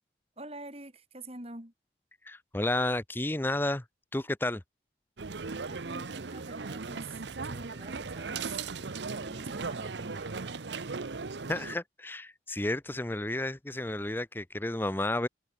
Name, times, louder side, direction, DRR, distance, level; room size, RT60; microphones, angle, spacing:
voice 1, 0.4-1.7 5.7-8.8 9.1-10.6, right 2 dB, 35° right, 6.4 m, -46 dB
voice 2, 2.2-3.8 4.1-4.6 11.5-15.3, left 1 dB, 10° left, 0.7 m, -31 dB
sound 1, 5.2-11.8, right 4 dB, 80° right, 0.9 m, -37 dB
head